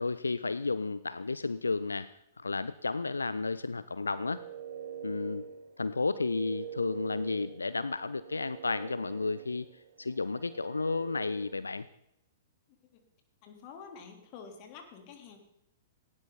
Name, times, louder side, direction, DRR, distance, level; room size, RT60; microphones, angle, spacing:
voice 1, 0.0-4.4 5.0-5.4 5.8-9.7 10.0-11.9, left 3 dB, 75° left, 15 dB, 0.6 m, -32 dB
sound 1, 3.9-11.8, right 8 dB, 55° right, 1.3 m, -45 dB
voice 2, 13.4-15.4, left 6 dB, 40° left, 3 dB, 3.6 m, -48 dB
18.5 x 17.5 x 4.1 m, 0.82 s
figure-of-eight pair, 105°, 0 cm